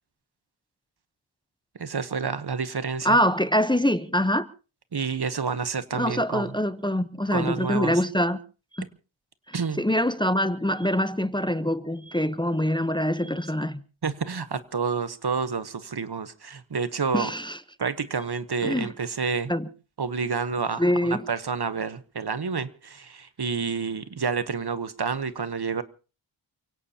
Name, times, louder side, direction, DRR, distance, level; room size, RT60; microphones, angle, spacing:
voice 1, 1.7-3.2 4.9-6.5 7.3-8.0 9.5-9.8 14.0-17.3 17.8-19.5 20.0-25.8, right 5 dB, 55° right, 1.1 m, -29 dB
voice 2, 3.0-4.5 5.9-8.4 8.7-8.8 9.5-13.8 17.1-17.6 18.6-18.9 19.5-19.7 20.8-21.3, equal, 10° left, 0.8 m, -24 dB
29.5 x 17.0 x 2.8 m
wide cardioid pair, 45°, 47 cm